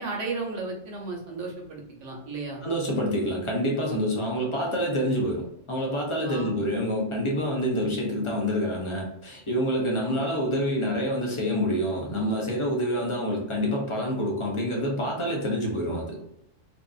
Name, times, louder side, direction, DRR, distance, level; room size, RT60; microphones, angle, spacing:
voice 1, 0.0-2.6 6.2-6.5 7.8-7.9, right 3 dB, 70° right, 0 dB, 1.0 m, -34 dB
voice 2, 2.6-5.4 5.7-16.2, equal, 40° left, -1 dB, 0.4 m, -27 dB
2.6 x 2.4 x 2.3 m, 0.77 s
omnidirectional pair, 1.3 m